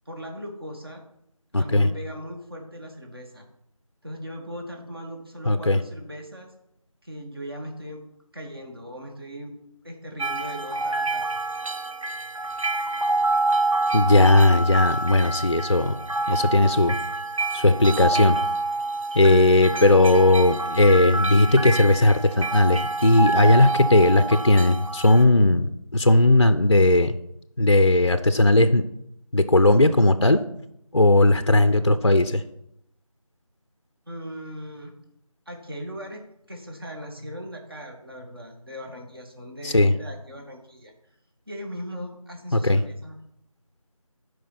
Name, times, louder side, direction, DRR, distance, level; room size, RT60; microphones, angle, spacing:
voice 1, 0.1-1.0 1.5-3.5 4.0-6.5 7.0-8.0 8.3-9.6 9.8-11.2 34.1-34.9 35.5-36.2 36.5-40.9 41.5-43.2, equal, 40° right, 2 dB, 1.9 m, -38 dB
voice 2, 1.5-1.9 5.5-5.8 13.9-16.0 16.3-16.9 17.5-18.4 19.1-27.2 27.6-28.8 29.3-30.4 30.9-32.4 39.6-39.9 42.5-42.8, left 2 dB, 50° left, 11 dB, 0.5 m, -17 dB
sound 1, 10.2-25.2, right 2 dB, 65° right, 0.8 m, -27 dB
11.5 x 5.1 x 5.9 m, 0.78 s
figure-of-eight pair, 175°, 18 cm